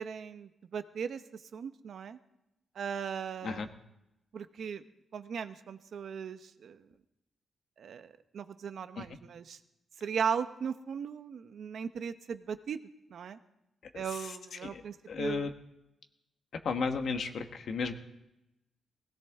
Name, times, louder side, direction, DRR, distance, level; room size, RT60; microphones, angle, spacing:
voice 1, 0.0-2.2 2.7-3.7 4.3-4.8 5.1-6.9 7.8-9.6 10.0-12.8 13.1-13.4 13.9-15.5, right 7 dB, 60° right, 10 dB, 0.9 m, -37 dB
voice 2, 13.9-14.4 14.6-14.8 15.1-15.5 16.6-17.9, left 5 dB, 60° left, 6 dB, 1.3 m, -34 dB
19.5 x 17.0 x 3.6 m, 0.88 s
wide cardioid pair, 140°, 0 cm